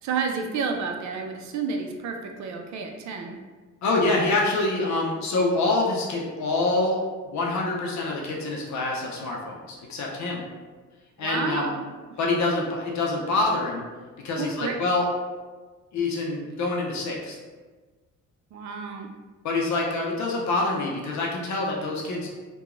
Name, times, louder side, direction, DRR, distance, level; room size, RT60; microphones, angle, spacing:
voice 1, 0.0-3.4 11.2-11.9 14.4-14.7 18.5-19.1, right 5 dB, 70° right, 4 dB, 0.5 m, -30 dB
voice 2, 3.8-7.0 7.3-10.4 11.2-11.7 12.2-13.9 14.2-15.1 15.9-17.4 19.4-22.3, left 2 dB, 70° left, -2 dB, 0.6 m, -26 dB
2.9 x 2.2 x 2.4 m, 1.3 s
cardioid pair, 90°, 30 cm